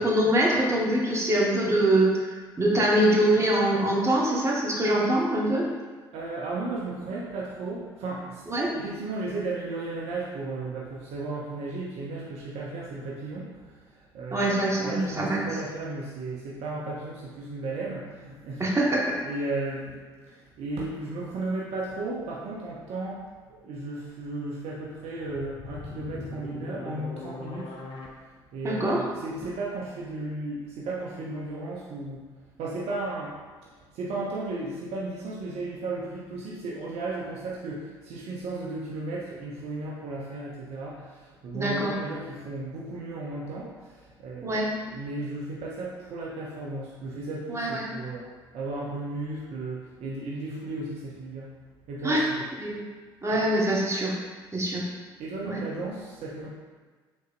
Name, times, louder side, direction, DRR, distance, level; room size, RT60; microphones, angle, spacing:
voice 1, 0.0-5.7 8.5-8.7 14.3-15.5 18.6-19.2 28.6-29.0 41.5-41.9 44.4-44.7 47.5-47.9 52.0-52.2 52.6-52.8 53.2-54.1 54.5-54.8 55.4-55.6, right 1 dB, 25° right, -4 dB, 1.2 m, -24 dB
voice 2, 6.1-18.7 19.2-23.2 23.5-27.8 28.5-32.2 32.6-48.3 48.5-51.5 51.9-52.5 55.2-56.5, right 2 dB, 55° right, -4 dB, 0.7 m, -35 dB
sound 1, 24.8-28.1, left 3 dB, 45° left, 0.7 m, -40 dB
5.3 x 3.9 x 2.5 m, 1.4 s
figure-of-eight pair, 50°, 12 cm